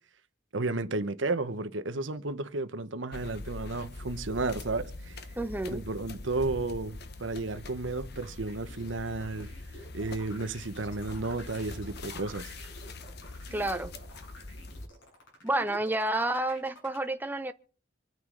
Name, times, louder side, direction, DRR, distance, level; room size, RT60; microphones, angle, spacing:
voice 1, 0.5-5.2 5.7-9.5 9.9-12.5, right 3 dB, 80° right, 1.1 m, -33 dB
sound 1, 3.1-14.9, left 2 dB, 60° left, 1.2 m, -43 dB
voice 2, 5.4-5.8 13.5-13.9 15.4-17.5, right 1 dB, 10° right, 0.7 m, -30 dB
sound 2, 7.9-17.0, left 1 dB, 80° left, 7.5 m, -49 dB
26.0 x 9.4 x 3.9 m
head